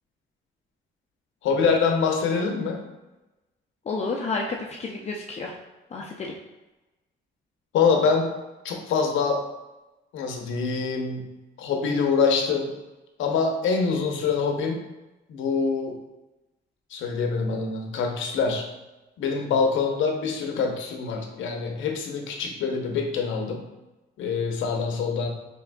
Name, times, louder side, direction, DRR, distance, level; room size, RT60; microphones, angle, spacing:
voice 1, 1.4-2.8 7.7-8.3 8.6-9.4 10.1-12.7 13.2-14.8 15.3-16.0 16.9-18.7 19.2-23.7 24.2-25.3, left 5 dB, 80° left, 3 dB, 0.7 m, -25 dB
voice 2, 3.9-5.5 5.9-6.3, left 3 dB, 35° left, -1 dB, 0.5 m, -30 dB
4.5 x 3.4 x 2.2 m, 1.1 s
cardioid pair, 90°, 20 cm